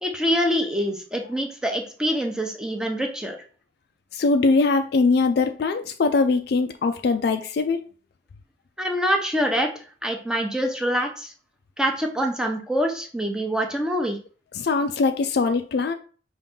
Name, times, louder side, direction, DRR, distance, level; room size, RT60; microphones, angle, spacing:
voice 1, 0.0-3.4 8.8-9.7 10.0-11.3 11.8-14.2, equal, 5° right, 0.7 m, -25 dB
voice 2, 4.1-7.8 14.5-15.9, left 3 dB, 60° left, 0.3 m, -21 dB
5.3 x 2.6 x 3.7 m
head